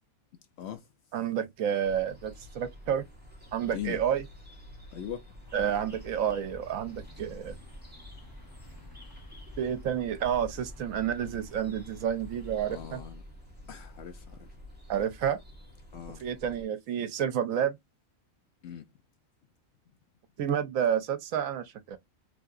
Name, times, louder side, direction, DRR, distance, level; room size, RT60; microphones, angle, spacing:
voice 1, 1.1-3.0 3.5-4.2 5.5-7.6 9.6-13.0 14.9-15.4 16.2-17.8 20.4-22.0, right 9 dB, 80° right, 1.0 m, -30 dB
sound 1, 1.8-16.6, left 1 dB, 10° right, 0.9 m, -49 dB
voice 2, 4.9-5.2 12.6-13.2 13.7-14.5 15.9-16.2 18.6-18.8, left 10 dB, 65° left, 0.7 m, -40 dB
sound 2, 5.4-12.8, left 1 dB, 20° left, 0.8 m, -51 dB
3.3 x 2.7 x 2.4 m
omnidirectional pair, 1.4 m